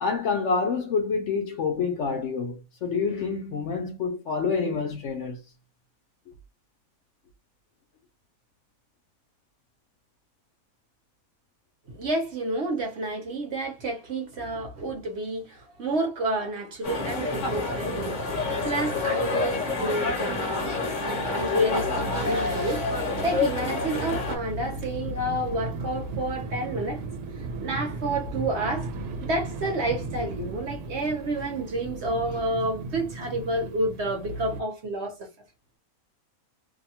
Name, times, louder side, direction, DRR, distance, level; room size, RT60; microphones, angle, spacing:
voice 1, 0.0-5.4, left 5 dB, 65° left, 0.8 m, -27 dB
voice 2, 11.9-27.0 27.6-28.9 29.2-35.1, right 1 dB, 55° right, 1.0 m, -30 dB
sound 1, 16.8-24.4, left 3 dB, 40° left, 0.8 m, -28 dB
sound 2, 17.3-34.6, right 2 dB, 85° right, 1.1 m, -37 dB
2.7 x 2.2 x 2.8 m
omnidirectional pair, 1.5 m